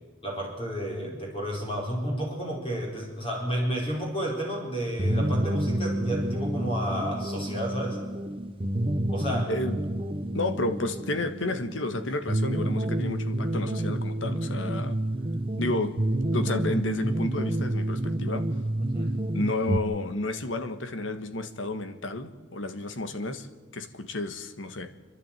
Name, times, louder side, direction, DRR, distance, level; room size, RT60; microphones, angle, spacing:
voice 1, 0.2-8.0 9.1-9.5 18.8-19.1, equal, 30° left, 4.6 m, -31 dB
sound 1, 5.0-19.8, right 1 dB, 25° right, 1.1 m, -29 dB
voice 2, 9.5-9.8 10.3-15.0 15.6-16.0 16.3-18.5 19.3-23.5 23.7-24.9, left 2 dB, 80° left, 1.6 m, -31 dB
28.0 x 11.5 x 9.1 m
head